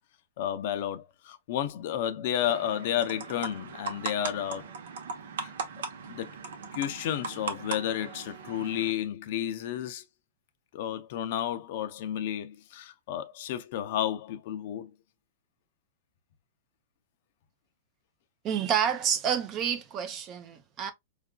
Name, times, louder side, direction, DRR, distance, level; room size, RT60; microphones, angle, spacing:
voice 1, 0.4-4.7 5.4-5.5 6.1-6.3 6.7-10.0 10.7-14.9, left 10 dB, 45° left, 0.5 m, -32 dB
sound 1, 2.4-8.9, right 5 dB, 75° right, 0.9 m, -39 dB
voice 2, 18.4-20.9, right 8 dB, 25° right, 0.5 m, -29 dB
4.6 x 2.4 x 2.2 m
supercardioid pair, 165°, 0 cm